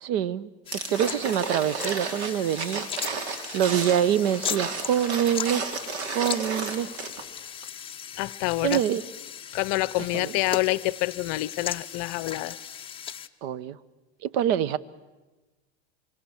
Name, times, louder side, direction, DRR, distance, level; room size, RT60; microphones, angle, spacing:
voice 1, 0.0-2.9 3.5-5.6 6.1-6.9 8.6-9.0 10.1-10.3 13.4-13.8 14.2-14.8, right 10 dB, 60° right, 17 dB, 1.1 m, -25 dB
sound 1, 0.7-13.3, left 8 dB, 15° left, 0.8 m, -37 dB
sound 2, 0.7-7.3 7.6-7.7, right 4 dB, 80° right, 3.2 m, -33 dB
voice 2, 8.2-8.8 9.5-12.6, left 20 dB, 50° left, 19 dB, 0.8 m, -27 dB
26.0 x 23.5 x 7.2 m, 1.2 s
supercardioid pair, 130°, 33 cm